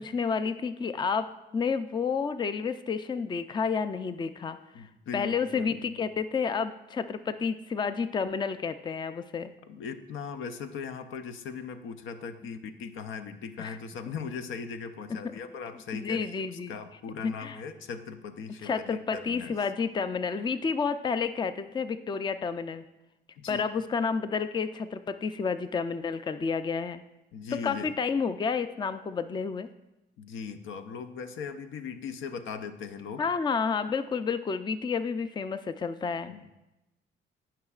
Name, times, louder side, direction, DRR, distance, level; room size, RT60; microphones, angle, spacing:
voice 1, 0.0-4.6 5.1-9.5 13.6-13.8 15.1-15.3 16.0-16.7 17.2-17.6 18.6-22.9 23.5-27.0 27.5-29.7 33.2-36.3, left 5 dB, 20° left, 12 dB, 0.4 m, -30 dB
voice 2, 4.7-6.0 9.7-19.6 23.4-23.6 27.3-27.9 30.2-33.2 36.3-36.5, left 6 dB, 80° left, 9 dB, 0.6 m, -39 dB
16.5 x 5.7 x 2.4 m, 0.95 s
cardioid pair, 90°, 20 cm